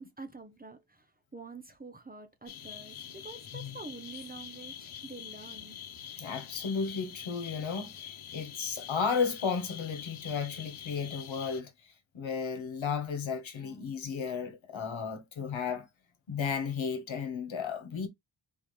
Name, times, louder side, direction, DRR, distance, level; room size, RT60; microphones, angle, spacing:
voice 1, 0.0-5.8, right 3 dB, 20° right, 0.8 m, -47 dB
sound 1, 2.5-11.6, left 9 dB, 85° left, 0.9 m, -45 dB
voice 2, 6.2-11.7 12.1-15.9 16.3-18.1, left 6 dB, 70° left, 1.4 m, -34 dB
4.4 x 3.7 x 3.2 m
wide cardioid pair, 155°, 48 cm